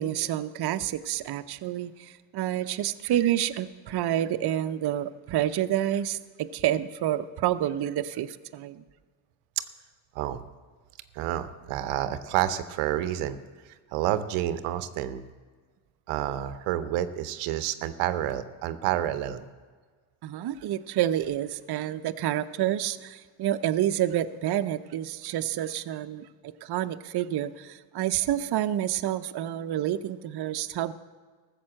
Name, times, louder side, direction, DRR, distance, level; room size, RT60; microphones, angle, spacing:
voice 1, 0.0-8.8 20.2-30.9, right 12 dB, 50° right, 0.7 m, -28 dB
voice 2, 11.1-13.4 13.9-15.3 16.1-19.5, right 12 dB, 90° right, 0.8 m, -29 dB
14.0 x 6.8 x 7.6 m
supercardioid pair, 80°, 50 cm